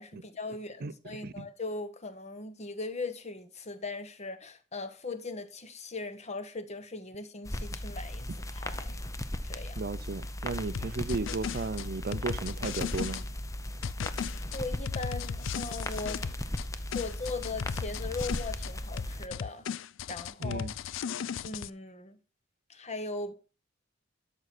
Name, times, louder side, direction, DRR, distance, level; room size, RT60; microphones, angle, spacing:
voice 1, 0.0-9.0 9.4-9.8 14.5-16.2 16.9-20.7 21.4-22.2 22.7-23.3, left 3 dB, 35° left, 1.1 m, -39 dB
voice 2, 0.8-1.5 9.8-13.2 20.4-20.7, right 3 dB, 55° right, 0.6 m, -35 dB
sound 1, 7.5-19.3, left 1 dB, 15° left, 0.7 m, -37 dB
sound 2, 10.7-13.2 13.8-16.7 16.9-18.7 19.0-21.7, left 7 dB, 75° left, 0.4 m, -36 dB
12.5 x 6.2 x 4.2 m
head